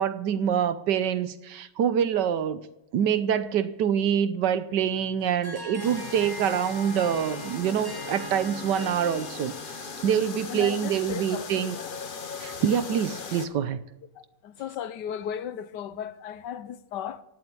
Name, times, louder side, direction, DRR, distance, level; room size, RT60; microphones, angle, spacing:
voice 1, 0.0-2.6 2.9-11.8 12.4-13.8, right 8 dB, 70° right, 1.4 m, -26 dB
Harp, 5.2-11.0, equal, 10° right, 1.7 m, -41 dB
sound 1, 5.8-13.5, left 5 dB, 40° left, 0.8 m, -39 dB
voice 2, 10.5-11.9 14.1-17.2, left 9 dB, 70° left, 1.3 m, -36 dB
16.5 x 7.9 x 8.6 m
omnidirectional pair, 2.0 m